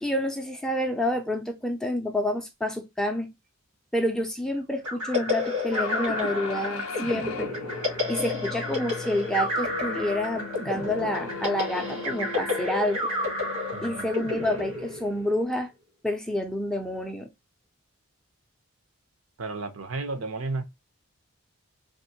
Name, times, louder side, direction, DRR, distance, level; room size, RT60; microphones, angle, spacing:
voice 1, 0.0-3.3 3.9-7.5 8.1-13.1 13.8-15.7 16.0-17.3, left 1 dB, ahead, 0.4 m, -28 dB
sound 1, 4.8-15.4, left 2 dB, 90° right, 1.6 m, -31 dB
sound 2, 5.7-14.5, left 4 dB, 65° left, 0.4 m, -39 dB
voice 2, 13.7-14.1 19.4-20.6, right 3 dB, 70° right, 0.6 m, -33 dB
3.6 x 2.5 x 2.6 m
head